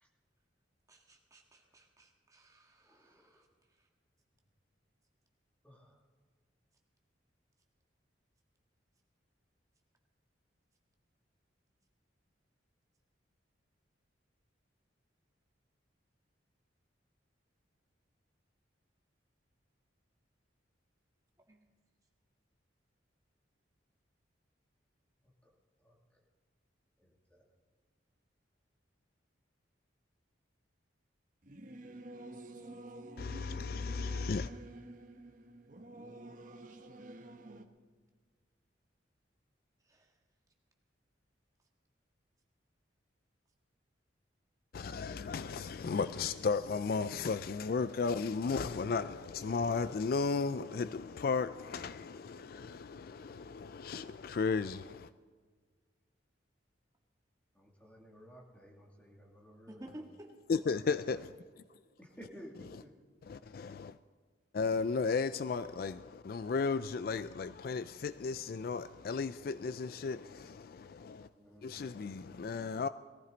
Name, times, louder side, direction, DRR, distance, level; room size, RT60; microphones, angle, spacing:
voice 1, 0.9-3.5 3.8-3.9 21.5-21.6 39.8-40.1 59.7-60.3, right 1 dB, 15° right, 1.7 m, -54 dB
voice 2, 2.9-3.3 5.6-5.9 25.8-25.9 27.3-27.4 57.6-59.8 62.0-62.5 62.8-63.0 71.4-71.7, equal, 5° left, 2.5 m, -54 dB
Singing / Musical instrument, 31.4-37.6, right 1 dB, 45° right, 0.9 m, -49 dB
voice 3, 33.2-34.5 44.7-55.1 60.5-61.6 62.6-62.8 63.2-64.0 64.5-71.3 71.6-72.9, left 4 dB, 50° left, 0.3 m, -35 dB
19.0 x 14.5 x 4.0 m
head